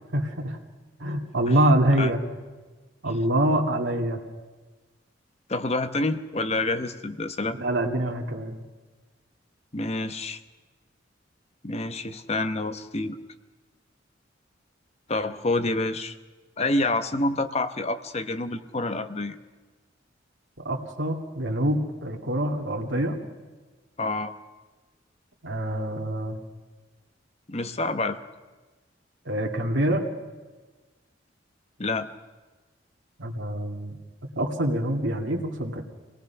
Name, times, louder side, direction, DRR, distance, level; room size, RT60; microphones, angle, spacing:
voice 1, 0.1-0.6 1.0-2.2 3.0-4.2 7.6-8.6 20.6-23.2 25.4-26.4 29.3-30.0 33.2-34.0 34.4-35.8, right 1 dB, 80° right, 1 dB, 2.3 m, -25 dB
voice 2, 5.5-7.6 9.7-10.4 11.6-13.2 15.1-16.2 16.6-19.4 24.0-24.3 27.5-28.2 31.8-32.1, left 2 dB, 35° left, 10 dB, 1.0 m, -27 dB
26.5 x 19.0 x 5.8 m, 1.3 s
head